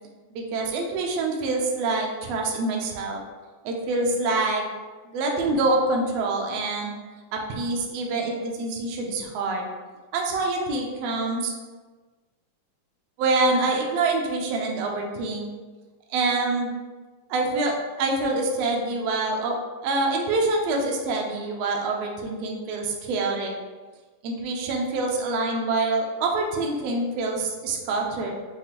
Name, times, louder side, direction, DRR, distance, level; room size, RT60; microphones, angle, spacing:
voice 1, 0.3-3.2 3.6-4.6 5.0-7.0 7.3-9.7 10.1-11.5 13.2-15.5 16.1-16.7 17.3-19.6 19.8-23.5 24.2-28.3, right 2 dB, 80° right, 1 dB, 1.5 m, -26 dB
7.4 x 2.5 x 2.9 m, 1.3 s
omnidirectional pair, 3.5 m